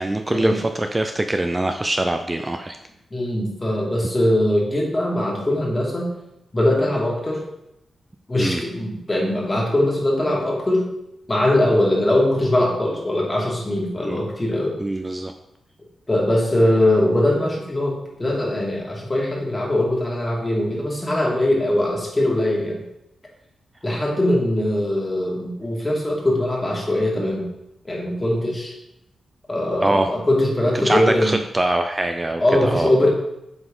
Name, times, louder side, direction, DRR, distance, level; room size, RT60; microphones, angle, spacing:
voice 1, 0.0-2.8 8.4-8.6 14.0-14.2 14.8-15.3 29.8-30.1 30.7-32.9, right 1 dB, 25° right, 6 dB, 0.5 m, -23 dB
voice 2, 3.1-6.1 6.5-7.4 8.3-10.9 11.3-14.8 16.1-22.8 23.8-27.5 27.8-28.7 29.5-31.4 32.4-33.1, left 1 dB, 25° left, -2 dB, 2.2 m, -21 dB
7.9 x 4.1 x 3.8 m, 0.84 s
cardioid pair, 60°, 0 cm